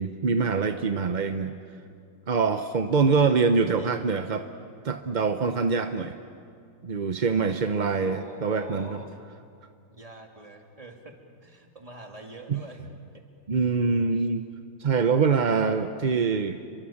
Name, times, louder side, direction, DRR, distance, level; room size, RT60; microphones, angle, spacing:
voice 1, 0.0-1.5 2.3-4.5 4.8-6.1 6.8-9.0 12.5-12.6 13.5-14.5 14.8-16.6, right 5 dB, 45° right, 8 dB, 0.6 m, -24 dB
voice 2, 3.8-4.3 8.0-9.1 9.9-11.1 11.4-12.8 13.5-13.8 14.2-14.3, right 2 dB, 20° right, 3 dB, 2.6 m, -45 dB
30.0 x 23.5 x 7.3 m, 2.4 s
omnidirectional pair, 1.8 m